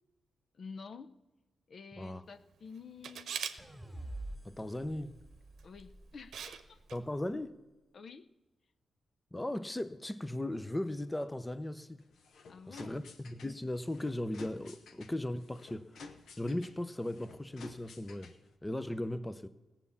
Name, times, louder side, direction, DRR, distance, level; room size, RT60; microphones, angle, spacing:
voice 1, 0.6-1.1 1.7-3.4 5.6-6.8 7.9-8.3 12.5-13.0, left 5 dB, 55° left, 0.6 m, -49 dB
Camera, 3.0-3.6 5.6-5.8 6.3-6.6 6.9-7.0, right 7 dB, 80° right, 0.8 m, -39 dB
sound 1, 3.6-6.8, right 1 dB, 5° right, 2.1 m, -47 dB
voice 2, 4.4-5.1 6.9-7.6 9.3-12.0 12.7-15.9 16.4-18.4 18.6-19.5, left 1 dB, 15° left, 0.7 m, -37 dB
sound 2, 12.0-18.6, left 4 dB, 75° left, 1.1 m, -54 dB
16.5 x 7.3 x 7.0 m
cardioid pair, 75°, 0 cm